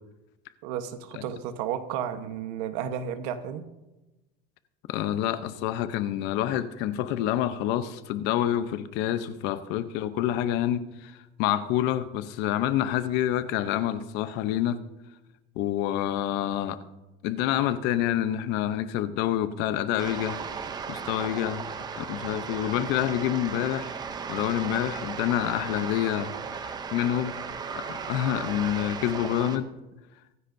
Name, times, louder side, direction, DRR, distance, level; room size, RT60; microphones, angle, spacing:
voice 1, 0.6-3.6, right 9 dB, 75° right, 1.1 m, -32 dB
voice 2, 4.9-14.8 15.6-16.8 17.2-20.4 20.9-21.6 21.9-23.9 24.3-27.3 27.7-29.7, left 12 dB, 60° left, 0.8 m, -27 dB
sound 1, 20.0-29.6, right 6 dB, 20° right, 0.6 m, -36 dB
24.0 x 9.9 x 2.7 m
cardioid pair, 165°, 21 cm